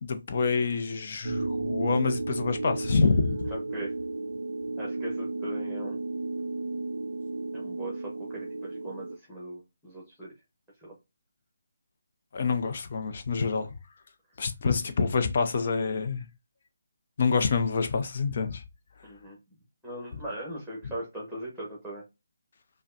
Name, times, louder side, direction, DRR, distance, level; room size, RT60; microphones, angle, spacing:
voice 1, 0.0-3.5 12.3-13.7 14.4-16.3 17.2-18.6, left 4 dB, 45° left, 0.7 m, -27 dB
sound 1, 1.2-9.2, right 2 dB, 75° right, 0.4 m, -33 dB
voice 2, 3.5-3.9 4.8-6.0 7.5-10.3 10.8-10.9 19.0-19.4 19.8-22.0, right 1 dB, ahead, 1.2 m, -39 dB
5.0 x 2.2 x 2.5 m
figure-of-eight pair, 155°, 0 cm